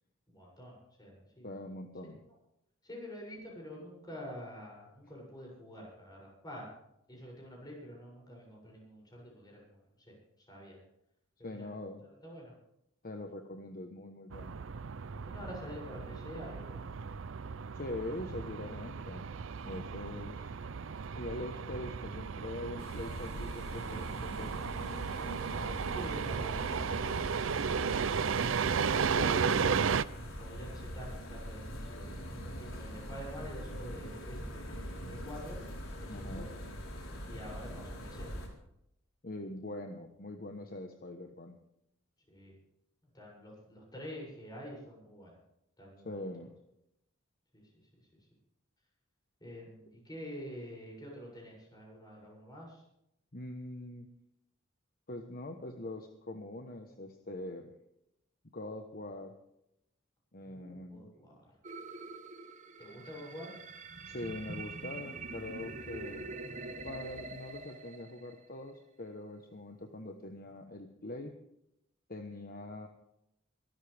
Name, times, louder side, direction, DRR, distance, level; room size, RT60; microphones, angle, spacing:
voice 1, 0.3-1.5 2.8-6.7 7.1-10.1 10.5-10.8 11.4-11.7 12.0-12.5 15.3-16.8 19.6-19.9 25.5-28.5 29.0-29.8 30.4-32.1 32.4-35.6 36.0-36.5 37.3-38.3 42.3-42.6 43.1-45.3 45.8-46.2 47.5-47.7 49.4-52.8 60.5-61.6 62.8-63.5, equal, 20° left, -2 dB, 7.5 m, -47 dB
voice 2, 1.4-2.2 11.4-12.0 13.0-14.6 17.7-19.2 19.6-20.6 21.1-24.6 29.1-29.8 36.1-36.5 39.2-41.5 46.0-46.5 53.3-54.1 55.1-57.7 58.5-59.3 60.3-61.1 64.0-66.3 66.8-71.3 72.1-72.9, left 1 dB, 45° left, 5 dB, 1.2 m, -43 dB
sound 1, 14.3-30.0, right 6 dB, 70° right, 0.5 m, -34 dB
sound 2, 22.8-38.5, equal, 80° left, 4.3 m, -43 dB
sound 3, 61.6-68.7, right 3 dB, 35° right, 1.2 m, -45 dB
24.0 x 13.0 x 3.6 m, 0.80 s
head